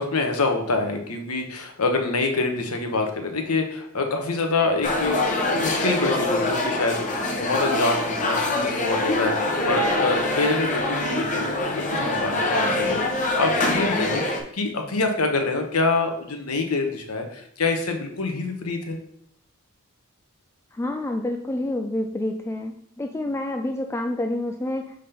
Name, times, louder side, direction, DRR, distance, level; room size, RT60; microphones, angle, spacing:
voice 1, 0.0-19.0, left 3 dB, 80° left, 4 dB, 1.1 m, -26 dB
sound 1, 4.8-14.4, left 2 dB, 35° left, 1.0 m, -24 dB
Bowed string instrument, 9.3-13.5, right 1 dB, 50° right, 1.6 m, -40 dB
voice 2, 20.7-24.9, left 1 dB, 10° left, 4 dB, 0.3 m, -28 dB
5.2 x 3.7 x 5.7 m, 0.71 s
head